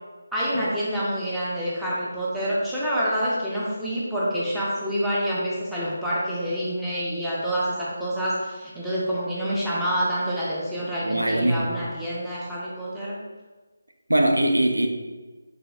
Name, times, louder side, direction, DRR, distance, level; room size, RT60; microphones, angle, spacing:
voice 1, 0.3-13.2, equal, ahead, -10 dB, 0.7 m, -27 dB
voice 2, 11.0-11.7 14.1-14.9, right 1 dB, 85° right, 4 dB, 0.5 m, -21 dB
3.8 x 3.3 x 2.3 m, 1.3 s
figure-of-eight pair, 155°, 0 cm